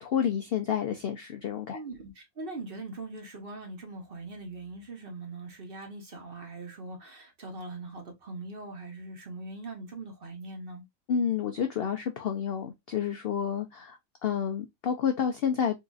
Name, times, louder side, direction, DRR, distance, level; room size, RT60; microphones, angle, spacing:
voice 1, 0.0-1.8 11.1-15.8, left 8 dB, 65° left, 0.6 m, -29 dB
voice 2, 1.7-10.8, right 2 dB, 45° right, 1.0 m, -41 dB
3.8 x 2.5 x 2.4 m
omnidirectional pair, 1.5 m